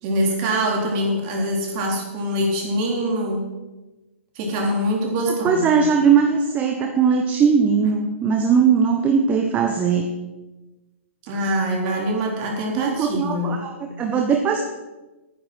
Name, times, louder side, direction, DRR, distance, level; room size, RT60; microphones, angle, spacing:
voice 1, 0.0-3.5 4.4-5.8 11.2-13.7, equal, 35° right, 0 dB, 3.9 m, -24 dB
voice 2, 5.4-10.1 12.7-14.6, right 6 dB, 20° right, 4 dB, 1.1 m, -19 dB
11.5 x 9.8 x 6.2 m, 1.1 s
hypercardioid pair, 130°, 7 cm